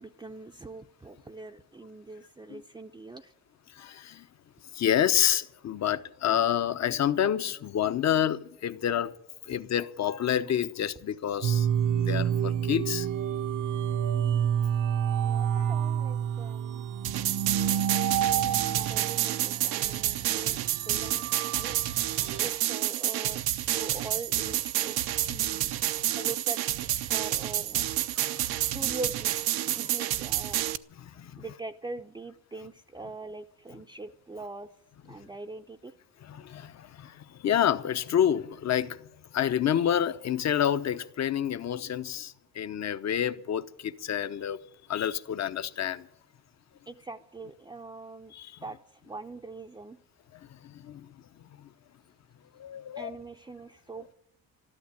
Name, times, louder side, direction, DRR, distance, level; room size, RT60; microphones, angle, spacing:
voice 1, 0.0-3.3 15.2-16.9 18.5-21.8 22.4-23.4 23.7-25.7 26.1-26.6 26.9-27.9 28.7-29.5 29.7-30.7 31.4-34.7 35.0-35.9 46.9-48.3 48.6-50.0 53.0-54.1, right 3 dB, 10° right, 0.6 m, -42 dB
voice 2, 3.8-4.3 4.7-9.1 9.5-11.7 11.9-13.1 18.2-18.4 25.2-25.3 26.1-26.3 28.2-28.4 29.7-29.8 31.0-31.4 36.2-39.1 39.3-44.6 44.9-46.1 48.3-48.6 50.5-51.1 51.6-51.7 52.5-53.1 54.0-54.1, left 10 dB, 45° left, 0.9 m, -29 dB
sound 1, 11.4-22.5, right 9 dB, 55° right, 0.8 m, -29 dB
sound 2, 17.0-30.8, right 13 dB, 85° right, 0.8 m, -29 dB
13.0 x 12.0 x 8.6 m
cardioid pair, 115°, 36 cm